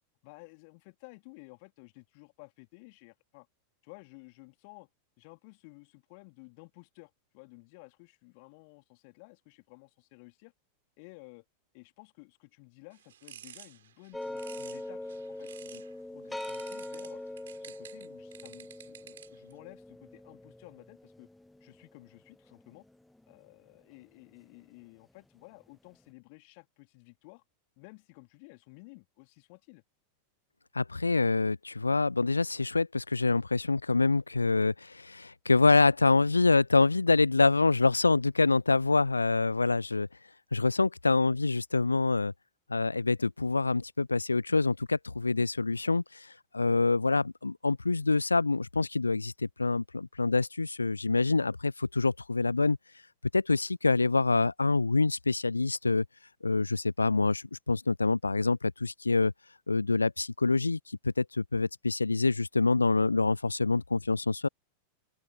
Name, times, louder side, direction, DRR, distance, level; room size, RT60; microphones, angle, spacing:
voice 1, 0.2-3.5 3.8-4.9 5.2-10.5 11.0-11.4 11.7-15.0 15.4-17.2 17.6-21.3 21.6-22.9 23.3-27.4 27.8-29.8, left 31 dB, 45° left, 2.7 m, -54 dB
sound 1, 12.9-15.9 16.4-19.5, right 10 dB, 60° right, 6.3 m, -51 dB
sound 2, 14.1-23.3, left 1 dB, 5° left, 0.4 m, -42 dB
voice 2, 30.7-40.1 40.5-42.3 42.7-49.3 49.6-52.8 53.3-56.0 56.4-59.3 59.7-64.5, left 3 dB, 80° left, 0.5 m, -26 dB
open air
figure-of-eight pair, 90°, 0 cm